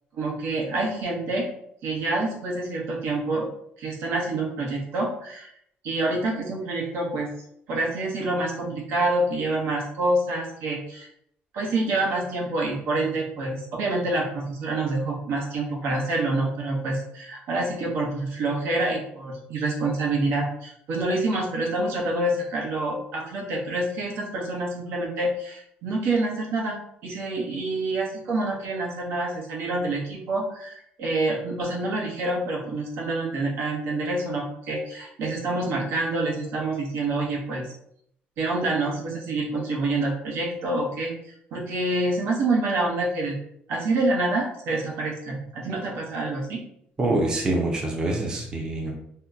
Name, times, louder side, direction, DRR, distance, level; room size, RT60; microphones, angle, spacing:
voice 1, 0.1-1.5 1.8-3.5 3.8-5.5 5.8-7.3 7.7-11.1 11.5-37.7 38.4-43.4 43.7-46.6, right 2 dB, 80° right, -1 dB, 1.0 m, -27 dB
voice 2, 47.0-49.0, right 2 dB, 20° right, 0 dB, 0.5 m, -25 dB
2.8 x 2.1 x 3.6 m, 0.71 s
cardioid pair, 160°, 4 cm